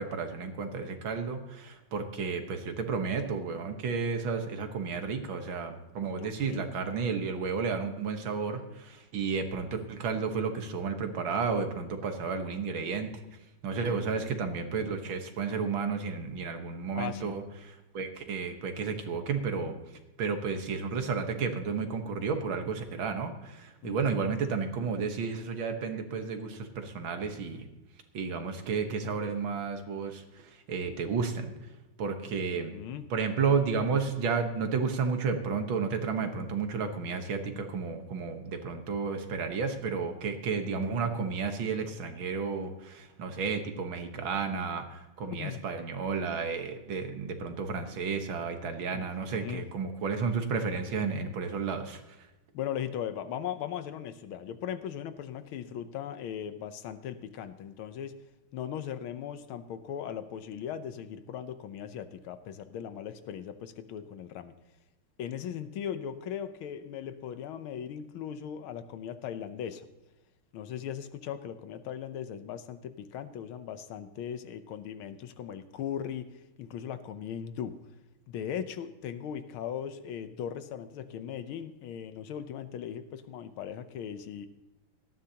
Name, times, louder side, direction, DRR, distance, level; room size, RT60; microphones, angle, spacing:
voice 1, 0.0-13.2 13.6-19.8 20.2-27.7 28.1-31.5 32.0-32.8 33.1-52.3, right 5 dB, 70° right, 6 dB, 2.1 m, -32 dB
voice 2, 6.1-6.7 13.8-14.3 16.9-17.3 23.8-24.3 32.7-33.1 45.3-45.6 48.9-49.7 52.5-58.2 58.5-64.5 65.2-69.9 70.5-77.8 78.3-84.5, left 9 dB, 80° left, 11 dB, 1.7 m, -38 dB
18.0 x 13.5 x 2.9 m, 1.0 s
omnidirectional pair, 2.3 m